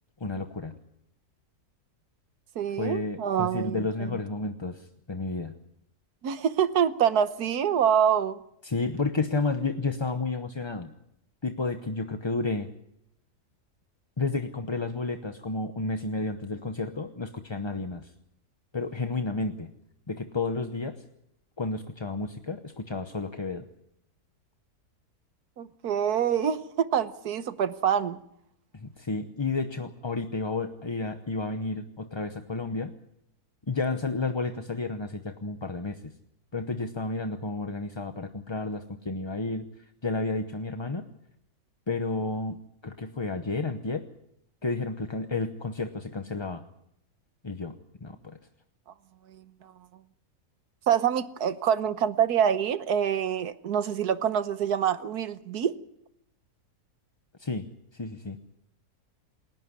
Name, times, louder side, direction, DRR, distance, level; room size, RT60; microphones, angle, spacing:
voice 1, 0.2-0.7 2.8-5.5 8.6-10.9 11.4-12.7 14.2-18.1 18.7-19.7 20.1-21.0 21.6-23.7 28.7-32.9 33.7-36.1 36.5-41.1 41.9-44.0 44.6-46.6 47.4-47.8 48.0-48.4 57.4-57.7 57.9-58.4, left 3 dB, 25° left, 0.7 m, -31 dB
voice 2, 2.5-4.2 6.2-8.4 25.6-28.2 49.3-49.4 50.9-55.7, right 8 dB, 85° right, 1.5 m, -26 dB
28.0 x 11.5 x 9.6 m
omnidirectional pair, 1.6 m